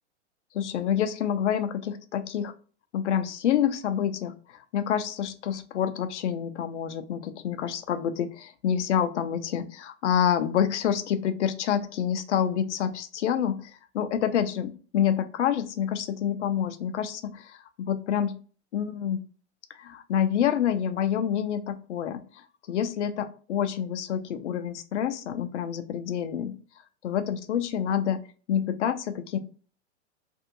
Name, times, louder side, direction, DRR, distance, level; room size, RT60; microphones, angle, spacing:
voice 1, 0.5-2.5 2.9-18.4 18.7-19.2 19.7-26.6 27.0-28.2 28.5-29.4, left 9 dB, 90° left, 10 dB, 0.5 m, -27 dB
2.6 x 2.4 x 2.6 m, 0.39 s
hypercardioid pair, 110°, 34 cm